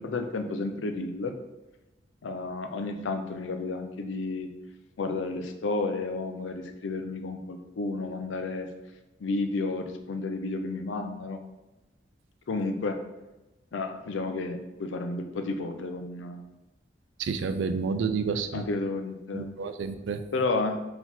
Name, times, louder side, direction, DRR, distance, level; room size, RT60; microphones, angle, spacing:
voice 1, 0.0-1.3 2.2-4.5 5.0-8.7 9.2-11.4 12.5-13.0 13.7-16.5 18.5-19.5 20.3-20.8, left 3 dB, 85° left, 6 dB, 0.5 m, -31 dB
voice 2, 17.2-18.6 19.3-20.2, right 5 dB, 75° right, 10 dB, 0.4 m, -30 dB
3.9 x 2.9 x 4.1 m, 1.0 s
head